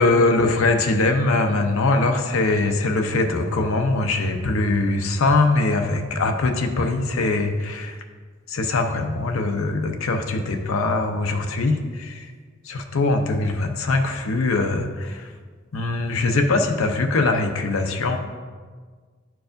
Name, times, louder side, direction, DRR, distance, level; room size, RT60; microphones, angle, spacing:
voice 1, 0.0-8.0 8.5-12.3 12.6-15.3 15.7-18.2, left 3 dB, 75° left, 4 dB, 0.6 m, -22 dB
10.0 x 4.6 x 2.5 m, 1.5 s
head